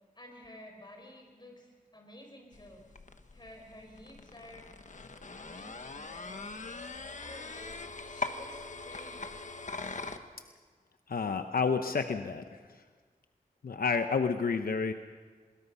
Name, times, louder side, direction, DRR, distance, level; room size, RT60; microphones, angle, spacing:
voice 1, 0.1-2.8 3.3-4.7 5.4-6.5 7.2-9.3, left 1 dB, 30° left, 2 dB, 5.8 m, -52 dB
sound 1, 2.5-10.2, left 3 dB, 55° left, 1.3 m, -42 dB
voice 2, 11.1-12.4 13.6-14.9, left 5 dB, 80° left, 8 dB, 0.8 m, -29 dB
23.0 x 21.5 x 5.5 m, 1.5 s
wide cardioid pair, 60°, 15 cm